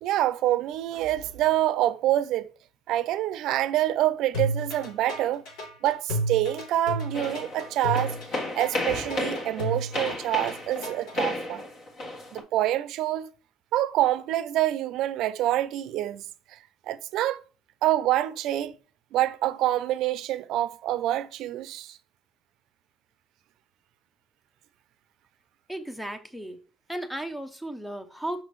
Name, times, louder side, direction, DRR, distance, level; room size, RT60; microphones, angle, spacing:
voice 1, 0.0-2.5 2.9-5.4 5.8-8.1 8.6-11.6 12.3-13.3 13.7-16.3 16.9-17.4 17.8-18.7 19.1-22.0, right 13 dB, 60° right, 0.5 m, -26 dB
sound 1, 4.3-11.2, equal, 80° left, 3.3 m, -32 dB
sound 2, 7.1-12.4, left 2 dB, 50° left, 1.6 m, -33 dB
voice 2, 25.7-26.6 26.9-28.4, right 1 dB, ahead, 0.6 m, -35 dB
6.0 x 5.9 x 3.1 m
cardioid pair, 150°, 0 cm